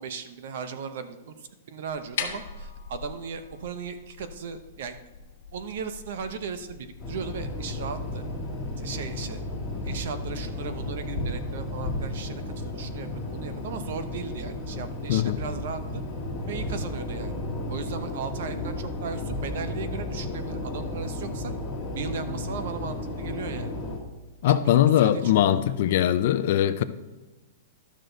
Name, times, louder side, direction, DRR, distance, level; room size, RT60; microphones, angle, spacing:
voice 1, 0.0-5.0 5.5-8.2 8.8-9.4 9.8-16.0 16.5-17.4 17.7-21.5 21.9-23.7 24.5-25.6, right 6 dB, 55° right, 10 dB, 0.9 m, -37 dB
sound 1, 1.9-7.9, left 7 dB, 60° left, 1.3 m, -41 dB
sound 2, 7.0-24.0, left 1 dB, 10° left, 1.7 m, -33 dB
voice 2, 24.4-26.8, left 11 dB, 45° left, 12 dB, 0.5 m, -21 dB
12.5 x 6.3 x 4.0 m, 1.2 s
supercardioid pair, 175°, 0 cm